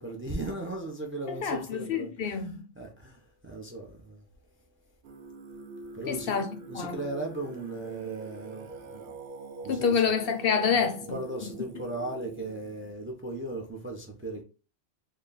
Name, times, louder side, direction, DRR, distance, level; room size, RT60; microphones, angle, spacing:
voice 1, 0.0-4.2 5.9-6.4 6.7-9.2 9.6-10.0 11.1-14.4, right 2 dB, 15° right, 0.5 m, -37 dB
voice 2, 1.3-2.5 6.1-7.0 9.7-11.2, left 6 dB, 65° left, 0.7 m, -27 dB
Singing, 5.0-12.9, right 3 dB, 85° right, 0.8 m, -44 dB
3.3 x 2.2 x 3.8 m
omnidirectional pair, 1.1 m